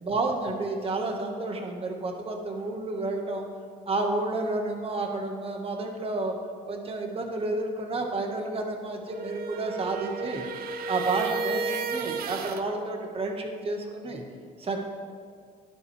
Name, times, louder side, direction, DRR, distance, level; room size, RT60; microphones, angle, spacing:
voice 1, 0.0-3.4 3.9-6.3 6.7-10.4 10.9-14.2 14.6-14.8, right 2 dB, 35° right, 3 dB, 1.6 m, -30 dB
sound 1, 9.0-12.6, right 4 dB, 60° right, 0.8 m, -33 dB
11.5 x 11.0 x 3.4 m, 2.1 s
cardioid pair, 110°, 17 cm